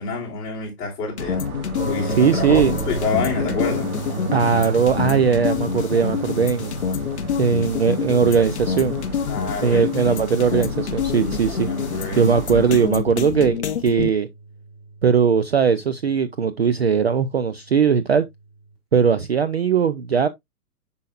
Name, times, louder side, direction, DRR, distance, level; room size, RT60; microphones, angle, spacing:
voice 1, 0.0-1.4 1.9-3.9 9.3-10.4 11.2-12.6, left 4 dB, 20° left, 3.1 m, -28 dB
sound 1, 1.2-14.1, left 7 dB, 50° left, 0.7 m, -27 dB
sound 2, 1.2-12.9, right 4 dB, 70° right, 2.4 m, -35 dB
sound 3, 1.8-18.3, right 3 dB, 15° right, 2.4 m, -36 dB
voice 2, 2.2-2.7 4.3-6.8 7.4-9.0 9.6-11.7 12.2-14.3 15.0-18.3 18.9-20.3, right 6 dB, 45° right, 0.4 m, -19 dB
7.7 x 5.6 x 2.4 m
hypercardioid pair, 170°, 45 cm